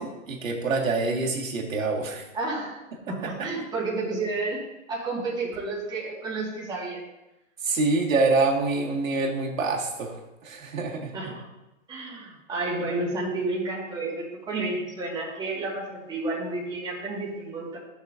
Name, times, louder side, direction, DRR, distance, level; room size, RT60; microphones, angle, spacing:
voice 1, 0.0-2.3 3.2-3.5 7.6-11.2, right 3 dB, 85° right, -1 dB, 2.1 m, -26 dB
voice 2, 2.3-2.8 3.1-4.6 4.9-7.0 11.1-11.4 11.9-17.8, right 2 dB, 10° right, -6 dB, 2.0 m, -31 dB
13.5 x 6.2 x 2.7 m, 0.96 s
hypercardioid pair, 140°, 39 cm